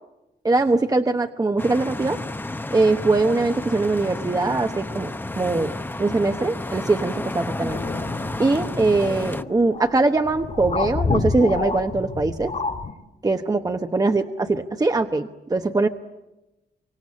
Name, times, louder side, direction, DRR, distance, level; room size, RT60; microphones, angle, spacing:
voice 1, 0.4-2.2 2.7-7.8 8.4-12.5 13.2-15.9, right 3 dB, 20° right, 6 dB, 1.1 m, -22 dB
sound 1, 1.6-9.4, left 2 dB, 10° left, 1.0 m, -31 dB
sound 2, 7.7-12.9, left 4 dB, 45° left, 2.7 m, -29 dB
26.0 x 25.0 x 8.6 m, 0.98 s
wide cardioid pair, 115°, 17 cm